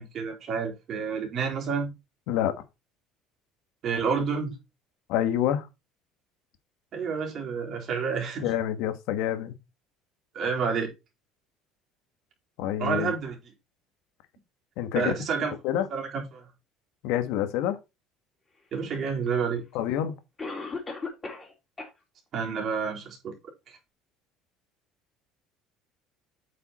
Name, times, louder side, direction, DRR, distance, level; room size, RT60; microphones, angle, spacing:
voice 1, 0.0-1.9 3.8-4.6 6.9-8.5 10.3-10.9 12.8-13.4 14.9-16.4 18.7-19.6 22.3-23.3 23.7-23.8, right 5 dB, 40° right, 3.6 m, -29 dB
voice 2, 5.1-5.7 8.4-9.5 12.6-13.1 14.8-15.1 15.6-15.9 17.0-17.8 19.7-20.2, left 11 dB, 75° left, 1.4 m, -27 dB
Cough, 19.3-19.4 20.4-21.5 21.8-21.9 22.4-22.5 23.1-23.2, left 4 dB, 15° left, 3.0 m, -35 dB
8.3 x 5.5 x 4.2 m
cardioid pair, 150°, 0 cm